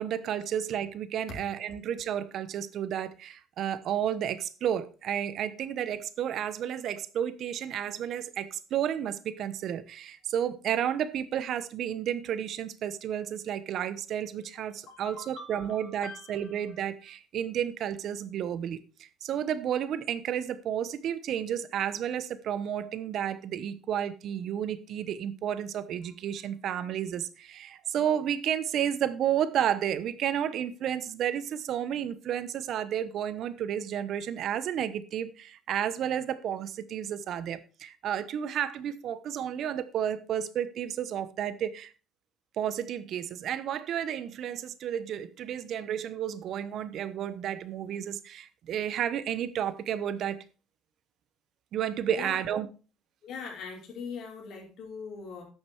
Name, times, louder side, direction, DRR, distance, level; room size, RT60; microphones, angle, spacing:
voice 1, 0.0-18.8 19.2-41.9 42.6-50.4 51.7-52.7, right 9 dB, 60° right, 0.9 m, -32 dB
voice 2, 14.5-16.6 52.1-52.4 53.2-55.4, left 5 dB, 60° left, 4.6 m, -42 dB
10.5 x 6.6 x 4.5 m
cardioid pair, 120°, 0 cm